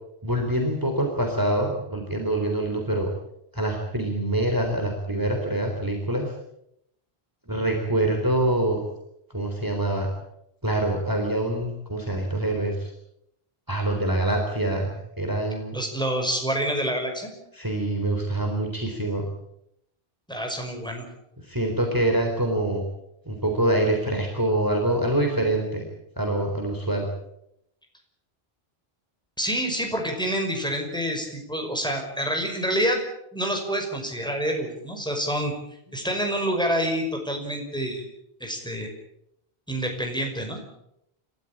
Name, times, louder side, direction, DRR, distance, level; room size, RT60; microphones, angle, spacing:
voice 1, 0.2-3.1 3.5-6.3 7.5-8.8 9.3-10.1 10.6-12.9 13.7-14.9 15.2-15.8 17.5-19.3 21.4-22.8 23.3-25.8 26.2-27.1, right 1 dB, 20° right, 2 dB, 3.9 m, -25 dB
voice 2, 15.7-17.3 20.3-21.1 29.4-33.0 33.3-35.5 35.9-38.1 38.4-38.9 39.7-40.6, equal, 5° left, 3 dB, 5.6 m, -27 dB
29.5 x 14.0 x 8.9 m, 0.78 s
omnidirectional pair, 1.1 m